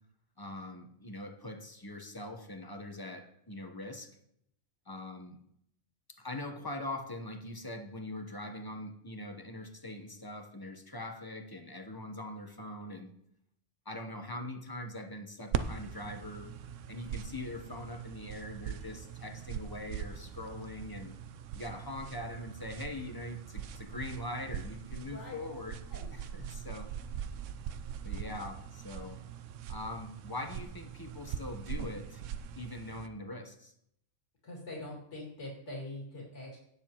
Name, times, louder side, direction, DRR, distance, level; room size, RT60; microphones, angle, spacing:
voice 1, 0.4-4.1 4.9-5.4 6.2-13.1 13.8-16.5 16.9-21.1 21.5-25.8 26.1-27.0 28.0-29.3 29.7-32.2 32.6-33.7, left 1 dB, 20° left, 4 dB, 0.9 m, -42 dB
sound 1, 15.5-33.1, right 8 dB, 80° right, 0.9 m, -41 dB
voice 2, 25.0-25.4 25.9-26.1 34.4-36.6, left 2 dB, 70° left, -3 dB, 2.8 m, -43 dB
17.5 x 6.9 x 3.0 m, 0.74 s
omnidirectional pair, 1.3 m